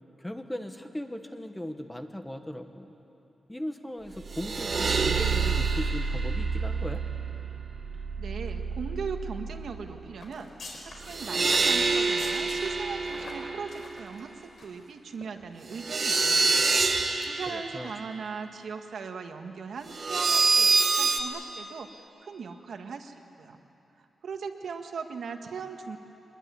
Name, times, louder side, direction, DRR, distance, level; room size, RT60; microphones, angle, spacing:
voice 1, 0.2-2.9 3.5-7.0 17.5-17.9, left 1 dB, 10° left, 6 dB, 1.2 m, -38 dB
sound 1, 4.2-10.0 11.0-13.8 15.7-17.7 19.9-21.2, right 4 dB, 45° right, 1.5 m, -27 dB
voice 2, 8.2-10.5 10.8-16.6 17.2-23.6 24.2-26.0, right 5 dB, 75° right, 5 dB, 1.7 m, -39 dB
sound 2, 10.2-14.9 15.1-15.3 15.7-16.4 16.8-17.0 17.3-17.5 17.8-17.9, left 2 dB, 55° left, 4.7 m, -45 dB
24.0 x 21.0 x 9.7 m, 2.8 s
wide cardioid pair, 155°, 0 cm